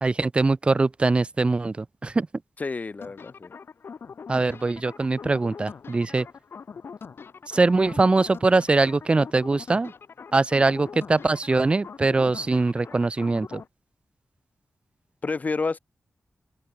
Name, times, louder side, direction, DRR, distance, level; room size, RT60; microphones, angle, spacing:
voice 1, 0.0-2.3 4.3-6.3 7.5-9.9 10.3-13.6, right 3 dB, 25° right, 0.5 m, -22 dB
voice 2, 2.6-3.5 15.2-15.8, left 4 dB, 35° left, 3.3 m, -29 dB
sound 1, 3.0-13.7, left 5 dB, 55° left, 1.9 m, -42 dB
open air
wide cardioid pair, 150°, 5 cm